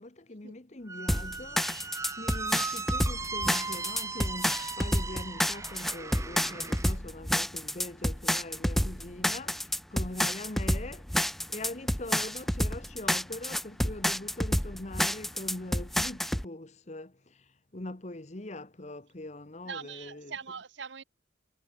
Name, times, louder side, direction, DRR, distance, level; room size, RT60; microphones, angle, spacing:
voice 1, 0.0-11.1 11.5-20.4, left 2 dB, 40° left, 1.2 m, -42 dB
Squeak, 0.9-7.0, right 4 dB, 15° right, 1.3 m, -38 dB
sound 1, 1.1-16.5, equal, ahead, 0.3 m, -29 dB
voice 2, 19.7-21.0, right 6 dB, 80° right, 1.1 m, -41 dB
head